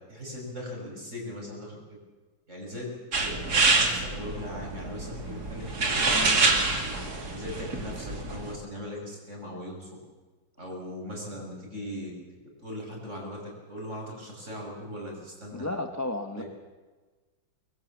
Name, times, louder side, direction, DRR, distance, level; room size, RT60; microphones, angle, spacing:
voice 1, 0.1-2.0 2.5-2.9 3.2-6.6 7.3-9.9 10.6-12.1 12.6-15.7 16.4-16.5, left 1 dB, 35° right, -1 dB, 6.9 m, -39 dB
sound 1, 3.1-8.5, right 3 dB, 50° right, 3.1 m, -26 dB
voice 2, 5.9-6.4 15.5-16.4, left 2 dB, 10° left, 5 dB, 0.8 m, -33 dB
24.0 x 21.5 x 7.3 m, 1.3 s
omnidirectional pair, 2.1 m